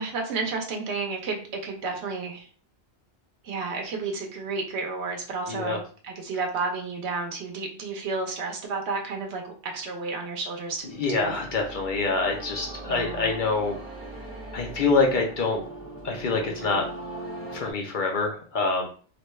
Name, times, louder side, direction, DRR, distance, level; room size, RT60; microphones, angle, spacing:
voice 1, 0.0-2.5 3.4-11.3 12.8-13.4, right 4 dB, 85° right, 2 dB, 1.0 m, -32 dB
voice 2, 5.5-5.8 10.9-13.8 14.5-15.6 16.0-16.8 17.5-18.9, left 3 dB, 55° left, 1 dB, 0.7 m, -26 dB
sound 1, 10.8-17.7, right 2 dB, 15° left, 0.8 m, -40 dB
3.0 x 2.2 x 3.1 m, 0.42 s
omnidirectional pair, 1.1 m